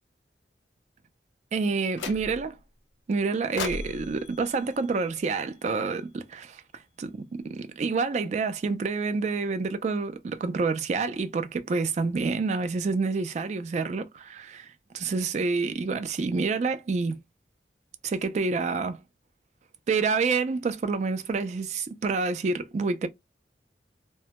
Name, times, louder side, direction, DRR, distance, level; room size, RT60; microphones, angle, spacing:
voice 1, 1.5-2.6 3.1-6.6 7.0-17.2 18.0-19.0 19.9-23.1, right 4 dB, 40° right, 0.3 m, -28 dB
sound 1, 2.0-2.6 3.6-5.8, left 4 dB, 90° left, 0.4 m, -38 dB
2.1 x 2.1 x 2.8 m
head